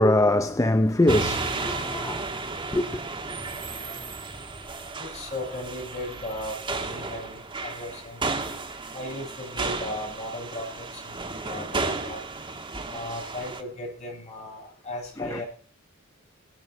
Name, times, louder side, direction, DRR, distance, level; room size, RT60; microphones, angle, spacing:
voice 1, 0.0-2.2 2.7-2.8 15.2-15.4, left 1 dB, 15° left, 0.6 m, -22 dB
sound 1, 1.1-13.6, right 3 dB, 25° right, 1.6 m, -33 dB
voice 2, 5.0-8.4 8.9-12.2 12.9-15.4, left 1 dB, 35° left, 7.8 m, -36 dB
18.5 x 12.0 x 4.8 m
head